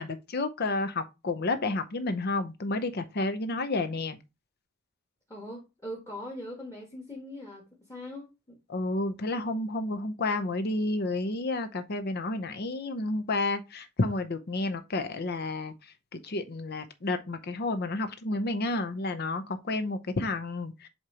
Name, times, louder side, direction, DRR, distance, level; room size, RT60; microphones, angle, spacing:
voice 1, 0.0-4.2 8.7-15.7 16.1-20.9, left 2 dB, 50° left, 0.7 m, -31 dB
voice 2, 5.3-8.6, left 1 dB, 15° left, 1.5 m, -41 dB
8.0 x 2.9 x 4.8 m
head